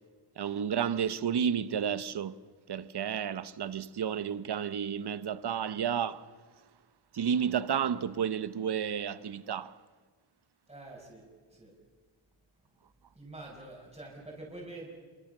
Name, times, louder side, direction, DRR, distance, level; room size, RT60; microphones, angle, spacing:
voice 1, 0.4-2.4 2.7-6.2 7.1-9.7, right 8 dB, 50° right, 1.1 m, -31 dB
voice 2, 10.7-11.7 13.1-14.9, right 2 dB, 15° right, 5.7 m, -46 dB
27.5 x 23.5 x 6.7 m
cardioid pair, 115°, 49 cm